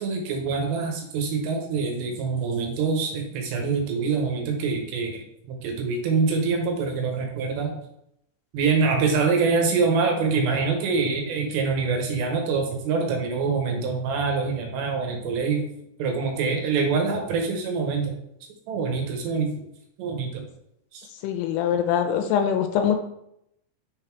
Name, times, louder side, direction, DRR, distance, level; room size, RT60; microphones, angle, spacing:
voice 1, 0.0-5.2 5.5-7.7 8.5-15.6 16.0-18.1 18.7-19.5 20.0-20.4 20.9-21.1, right 4 dB, 80° right, 2 dB, 3.0 m, -25 dB
voice 2, 21.2-23.0, left 8 dB, 80° left, 5 dB, 2.5 m, -23 dB
6.3 x 3.9 x 4.4 m, 0.78 s
omnidirectional pair, 4.9 m